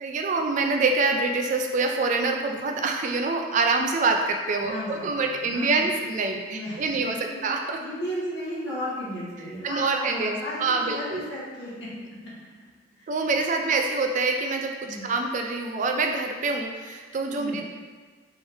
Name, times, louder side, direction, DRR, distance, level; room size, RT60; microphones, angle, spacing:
voice 1, 0.0-7.8 9.6-11.2 13.1-17.7, right 3 dB, 40° right, 3 dB, 0.3 m, -26 dB
voice 2, 4.6-5.1 5.4-5.8 6.5-6.8 7.2-7.4 7.8-11.9 13.0-13.1 13.6-13.8 14.8-15.1 17.3-17.6, equal, 70° left, -9 dB, 1.4 m, -34 dB
3.8 x 3.4 x 2.5 m, 1.5 s
head